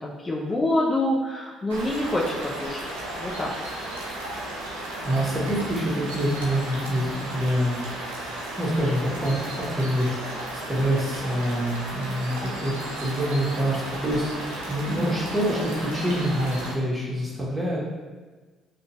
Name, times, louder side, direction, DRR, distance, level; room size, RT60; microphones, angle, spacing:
voice 1, 0.0-3.5, left 1 dB, 30° left, -4 dB, 0.4 m, -26 dB
sound 1, 1.7-16.7, right 1 dB, 85° right, 0.4 m, -34 dB
voice 2, 5.0-7.8 8.2-12.7 13.0-17.8, equal, 15° right, -5 dB, 1.0 m, -26 dB
2.5 x 2.2 x 2.9 m, 1.3 s
hypercardioid pair, 50°, 0 cm